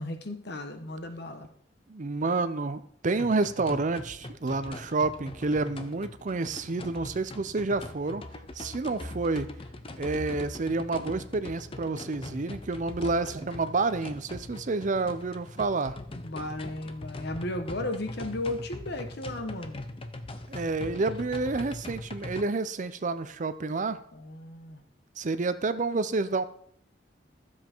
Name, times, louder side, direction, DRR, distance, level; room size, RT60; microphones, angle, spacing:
voice 1, 0.0-1.5 16.2-19.8 24.1-24.8, left 1 dB, 60° left, 7 dB, 1.3 m, -35 dB
voice 2, 1.9-8.2 8.6-9.5 10.0-16.0 20.5-24.0 25.2-26.5, right 3 dB, 45° right, 12 dB, 0.6 m, -29 dB
sound 1, 3.2-22.4, left 2 dB, 30° left, 0.7 m, -41 dB
12.5 x 7.5 x 4.5 m, 0.65 s
head